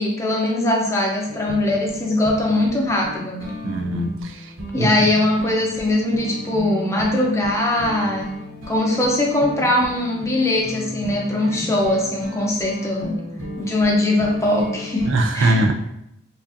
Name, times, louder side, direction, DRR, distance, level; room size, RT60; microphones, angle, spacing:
voice 1, 0.0-3.5 4.7-8.3 8.7-13.1 13.6-15.1 15.3-15.6, left 1 dB, 15° left, -1 dB, 0.5 m, -21 dB
sound 1, 1.3-15.1, left 1 dB, 85° right, 0.8 m, -34 dB
voice 2, 3.6-5.1 15.0-15.7, right 1 dB, 70° right, 4 dB, 0.4 m, -22 dB
4.7 x 2.5 x 2.5 m, 0.80 s
head